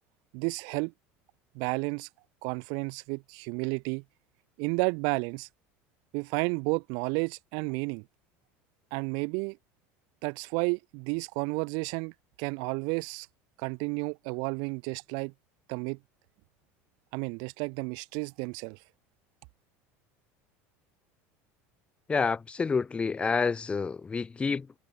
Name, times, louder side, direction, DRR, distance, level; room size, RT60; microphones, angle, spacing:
voice 1, 0.3-0.9 1.5-2.1 2.4-4.0 4.6-5.5 6.1-8.0 8.9-9.6 10.2-12.1 12.4-13.3 13.6-15.3 15.7-16.0 17.1-18.8, right 36 dB, 70° right, 1.6 m, -31 dB
voice 2, 22.1-24.8, left 5 dB, 15° left, 0.4 m, -28 dB
supercardioid pair, 115°, 7 cm